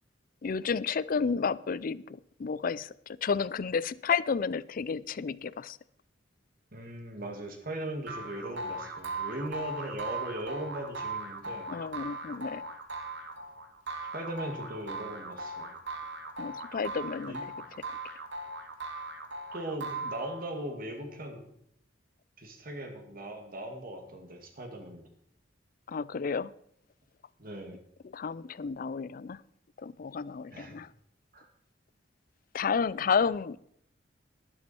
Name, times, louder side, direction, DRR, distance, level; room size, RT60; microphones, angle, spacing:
voice 1, 0.4-5.8 11.7-12.6 16.4-17.4 25.9-26.5 28.0-29.4 29.8-30.9 32.5-33.6, left 5 dB, 45° left, 0.4 m, -31 dB
voice 2, 6.7-11.7 14.1-15.7 17.3-17.4 19.5-21.4 22.4-25.0 27.4-27.8 30.5-30.8 31.3-31.5, right 1 dB, 50° right, 2.3 m, -39 dB
sound 1, 8.1-20.6, right 2 dB, 65° right, 2.0 m, -39 dB
12.0 x 11.5 x 4.4 m
head